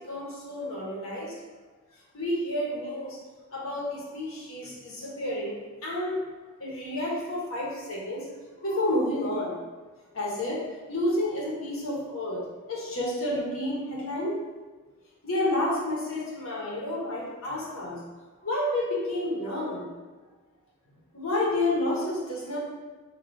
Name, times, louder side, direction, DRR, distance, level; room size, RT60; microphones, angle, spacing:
voice 1, 0.0-1.3 2.1-3.2 3.5-6.2 6.6-8.3 8.6-9.6 10.1-10.6 10.9-12.4 12.7-14.4 15.2-18.0 18.4-19.8 21.1-22.6, left 1 dB, 70° left, -4 dB, 0.9 m, -30 dB
4.4 x 2.3 x 2.6 m, 1.3 s
head